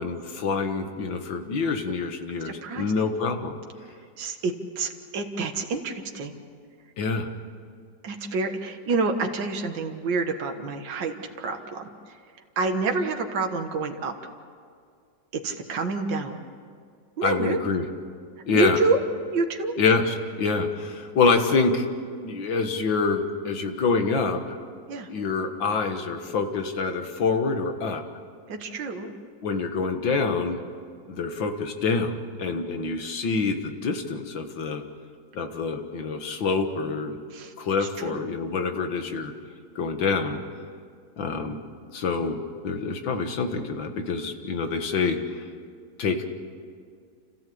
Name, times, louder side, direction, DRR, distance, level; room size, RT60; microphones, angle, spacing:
voice 1, 0.0-3.6 7.0-7.3 17.2-17.9 18.5-18.8 19.8-21.9 22.2-24.4 25.1-28.0 29.4-30.6 31.1-34.8 35.3-37.2 37.6-39.3 39.8-40.4 41.2-41.6 41.9-42.4 42.6-45.5 46.0-46.2, left 4 dB, 80° left, 6 dB, 2.3 m, -26 dB
voice 2, 2.4-2.9 4.2-6.3 8.0-12.2 12.6-14.1 15.3-16.5 17.2-17.6 18.5-19.0 19.3-19.7 24.9-25.1 28.5-29.1 37.3-37.5 37.8-38.2, right 3 dB, 75° right, 4 dB, 2.1 m, -28 dB
29.5 x 15.0 x 8.6 m, 2.2 s
omnidirectional pair, 2.0 m